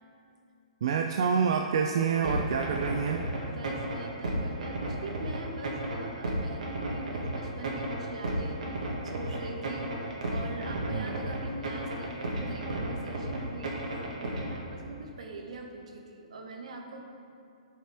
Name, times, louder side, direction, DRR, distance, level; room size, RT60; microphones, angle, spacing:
voice 1, 0.8-3.3 10.9-11.2, right 6 dB, 40° right, 4 dB, 0.3 m, -27 dB
sound 1, 2.2-14.6, right 1 dB, 85° right, 1.8 m, -34 dB
voice 2, 3.5-17.0, right 2 dB, 65° right, 2 dB, 1.1 m, -42 dB
11.0 x 5.4 x 3.4 m, 2.5 s
hypercardioid pair, 175°, 4 cm